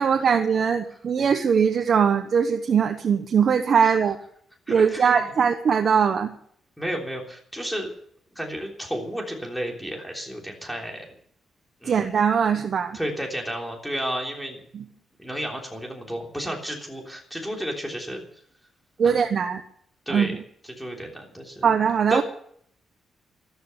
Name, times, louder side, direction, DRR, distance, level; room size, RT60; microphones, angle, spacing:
voice 1, 0.0-4.2 4.7-6.3 11.8-13.0 14.7-14.8 19.0-19.6 20.1-20.4 21.6-22.2, right 7 dB, 40° right, 5 dB, 1.1 m, -21 dB
voice 2, 4.7-5.3 6.8-7.9 8.3-11.0 11.8-12.1 12.9-14.6 14.9-18.2 19.0-19.2 20.0-20.4 20.6-21.7 22.1-22.2, equal, ahead, 1 dB, 3.3 m, -32 dB
13.5 x 13.0 x 6.9 m, 0.63 s
wide cardioid pair, 180°, 0 cm